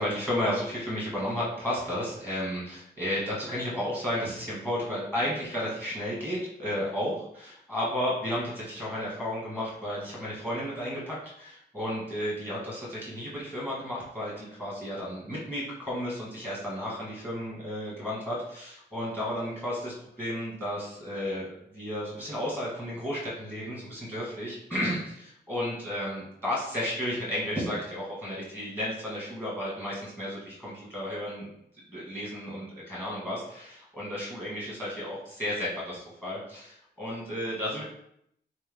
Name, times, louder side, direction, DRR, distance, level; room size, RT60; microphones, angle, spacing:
voice 1, 0.0-31.5 31.9-37.9, equal, 15° left, -7 dB, 1.4 m, -33 dB
3.4 x 3.4 x 3.4 m, 0.73 s
wide cardioid pair, 180°, 19 cm